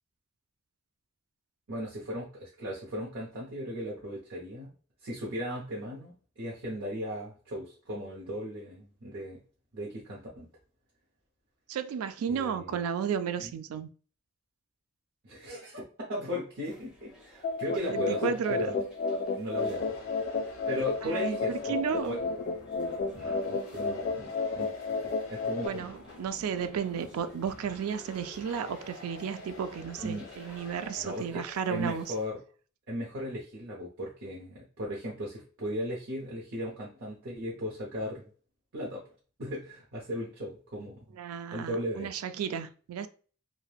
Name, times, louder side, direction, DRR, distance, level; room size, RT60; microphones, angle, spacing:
voice 1, 1.7-4.7 5.0-9.4 9.7-10.5 12.3-12.7 13.4-13.5 15.2-18.2 18.5-18.8 19.1-20.0 20.7-22.2 23.1-24.7 25.3-25.9 30.0-30.3 31.0-31.4 31.7-32.4 32.9-38.3 38.7-39.0 39.4-41.2 41.5-42.1, equal, 65° right, 0.7 m, -37 dB
voice 2, 11.7-13.9 17.7-18.7 21.0-22.2 25.6-32.1 41.1-43.1, right 7 dB, 85° right, 0.3 m, -33 dB
sound 1, 16.6-32.3, left 1 dB, 5° right, 1.1 m, -54 dB
sound 2, 17.4-25.7, left 4 dB, 40° left, 0.3 m, -32 dB
sound 3, 19.6-31.0, left 2 dB, 70° left, 0.9 m, -49 dB
3.2 x 2.2 x 2.3 m
head